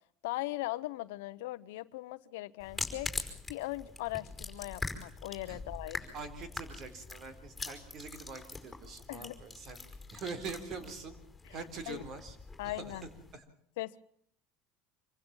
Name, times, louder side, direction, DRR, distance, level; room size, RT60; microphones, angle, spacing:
voice 1, 0.2-3.1 3.5-6.1 9.1-9.4 11.4-11.6 11.9-12.0 12.6-13.0 13.8-14.0, left 18 dB, 85° left, 16 dB, 0.9 m, -39 dB
sound 1, 2.6-13.3, left 3 dB, 10° left, 5.2 m, -43 dB
voice 2, 6.1-9.8 10.1-11.2 11.5-12.4 12.6-13.0 13.3-13.4, right 4 dB, 45° right, 12 dB, 3.9 m, -44 dB
26.5 x 16.0 x 7.2 m, 0.66 s
supercardioid pair, 115°, 0 cm